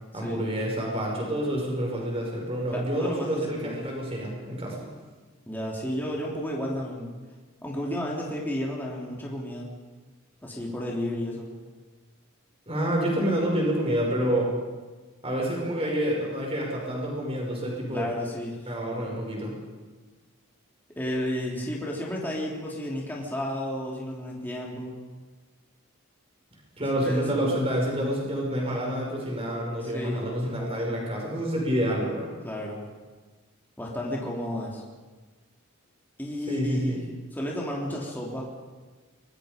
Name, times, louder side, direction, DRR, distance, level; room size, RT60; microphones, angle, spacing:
voice 1, 0.1-4.8 12.7-14.5 15.2-18.1 18.7-19.6 26.8-32.3 36.5-37.0, equal, 25° right, -1 dB, 5.6 m, -28 dB
voice 2, 2.7-3.8 5.5-7.1 7.6-9.7 10.4-11.5 17.9-18.7 21.0-24.9 27.0-27.3 29.8-30.2 32.4-32.8 33.8-34.8 36.2-37.1 37.3-38.5, left 1 dB, 10° left, -3 dB, 3.2 m, -32 dB
24.5 x 22.0 x 5.2 m, 1.3 s
head